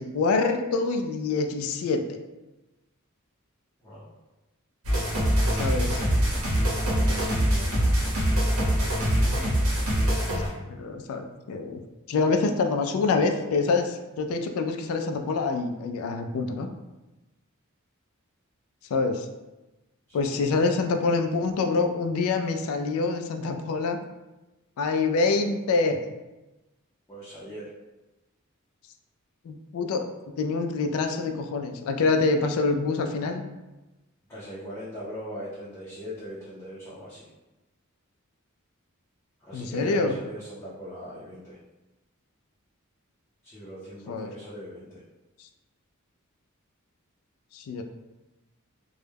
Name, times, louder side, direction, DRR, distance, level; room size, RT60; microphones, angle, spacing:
voice 1, 0.0-2.2 5.5-6.0 10.3-11.8 12.1-16.7 18.9-19.3 20.1-24.0 24.8-26.1 29.4-33.4 39.5-40.2 44.1-44.3 47.5-47.8, left 4 dB, 75° left, 7 dB, 0.3 m, -26 dB
sound 1, 4.8-10.5, equal, 80° right, 0.8 m, -24 dB
voice 2, 6.9-7.3 20.1-20.5 27.1-27.7 34.3-37.3 39.4-41.6 43.4-45.0, equal, 15° left, -10 dB, 0.5 m, -40 dB
2.2 x 2.0 x 3.2 m, 1.1 s
head